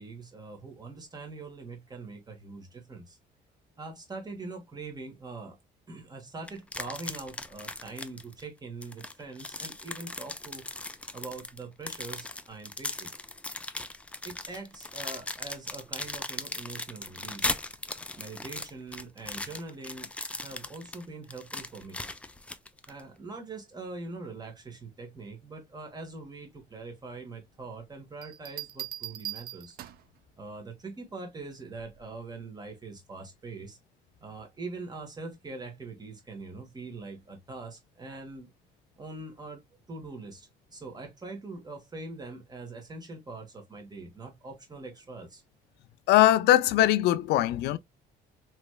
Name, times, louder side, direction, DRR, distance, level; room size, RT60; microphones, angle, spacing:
voice 1, 0.0-3.2 3.8-5.6 5.9-10.7 11.1-13.1 14.2-17.5 18.1-22.0 22.9-29.8 30.4-33.8 34.2-38.5 39.0-39.6 39.9-45.4, right 3 dB, 25° right, 1.4 m, -43 dB
sound 1, 6.5-8.4 8.8-23.0, left 2 dB, 5° left, 0.3 m, -38 dB
Bell, 28.2-30.2 31.8-32.1, right 12 dB, 60° right, 0.5 m, -40 dB
voice 2, 46.1-47.8, left 13 dB, 80° left, 0.4 m, -21 dB
3.1 x 3.1 x 2.2 m
cardioid pair, 110°, 17 cm